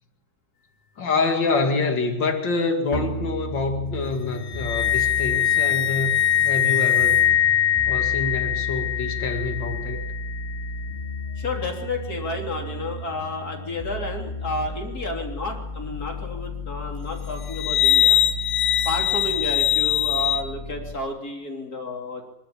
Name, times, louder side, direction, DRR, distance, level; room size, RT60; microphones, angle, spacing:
voice 1, 1.0-7.4 7.9-10.0, left 3 dB, 65° left, 4 dB, 2.9 m, -26 dB
sound 1, 2.9-20.9, left 2 dB, 35° left, 2.8 m, -34 dB
sound 2, 4.5-10.7 17.5-20.4, left 11 dB, 85° left, 1.8 m, -22 dB
voice 2, 11.4-18.2 18.8-22.2, left 2 dB, 50° left, 1 dB, 3.9 m, -31 dB
26.0 x 12.5 x 8.7 m, 0.97 s
omnidirectional pair, 2.1 m